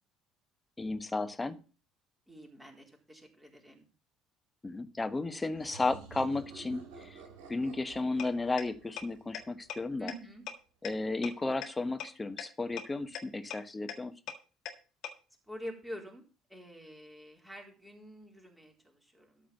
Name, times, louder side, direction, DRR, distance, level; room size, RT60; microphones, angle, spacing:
voice 1, 0.8-1.6 4.6-7.2 7.5-10.1 10.8-14.1, left 3 dB, 20° left, 10 dB, 1.2 m, -34 dB
voice 2, 2.3-3.9 10.0-10.5 15.5-16.2 16.5-19.5, equal, 5° right, 1 dB, 4.0 m, -47 dB
sound 1, 5.5-10.1, right 5 dB, 65° right, 2.6 m, -51 dB
sound 2, 8.2-8.3 8.6-8.7 9.0-9.1 9.3-9.4 9.7-9.8 10.1-10.2 10.5-10.6 10.8-10.9 11.2-11.3 11.6-11.7 12.0-12.1 12.4-12.5 12.8-12.9 13.1-13.2 13.5-13.6 13.9-14.0 14.3-14.4 14.7-14.8 15.0-15.1, left 10 dB, 55° left, 1.7 m, -37 dB
13.0 x 5.0 x 7.0 m, 0.35 s
figure-of-eight pair, 55°, 0 cm